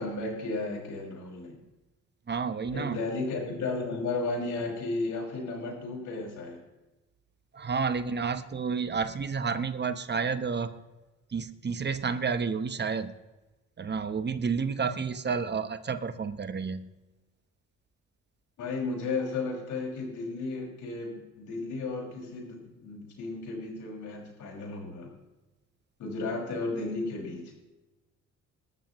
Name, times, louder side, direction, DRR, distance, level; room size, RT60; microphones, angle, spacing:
voice 1, 0.0-1.6 2.7-6.6 18.6-25.1 26.0-27.5, left 3 dB, 80° left, -1 dB, 5.9 m, -34 dB
voice 2, 2.3-3.0 7.5-10.8 11.3-13.1 13.8-16.9, right 5 dB, 35° right, 11 dB, 1.1 m, -30 dB
21.0 x 13.5 x 3.1 m, 1.1 s
cardioid pair, 90°, 30 cm